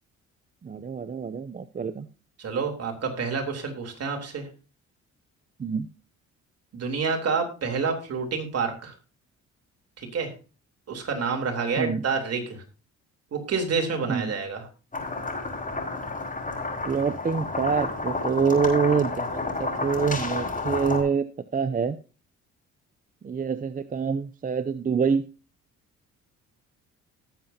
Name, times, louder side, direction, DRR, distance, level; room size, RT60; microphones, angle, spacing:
voice 1, 0.6-2.1 5.6-5.9 11.8-12.0 14.1-14.3 16.9-21.3 21.5-22.0 23.2-25.2, right 6 dB, 30° right, 12 dB, 0.6 m, -26 dB
voice 2, 2.4-4.5 6.7-8.9 10.0-10.3 10.9-12.6 13.3-14.7, right 5 dB, 55° right, 3 dB, 3.5 m, -28 dB
sound 1, 14.9-21.0, left 3 dB, 25° left, 5.4 m, -30 dB
18.5 x 7.7 x 2.8 m, 0.33 s
cardioid pair, 90°, 30 cm